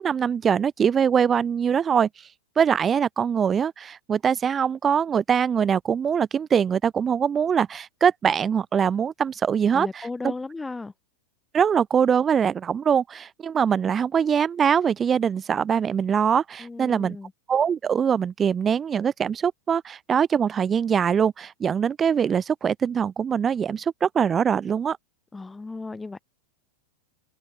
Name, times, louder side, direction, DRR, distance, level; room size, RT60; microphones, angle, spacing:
voice 1, 0.0-2.1 2.6-10.1 11.5-17.2 17.5-25.0, right 7 dB, 20° right, 1.8 m, -23 dB
voice 2, 9.7-10.9 16.6-17.3 25.3-26.2, left 3 dB, 10° left, 5.6 m, -35 dB
open air
figure-of-eight pair, 90°, 0 cm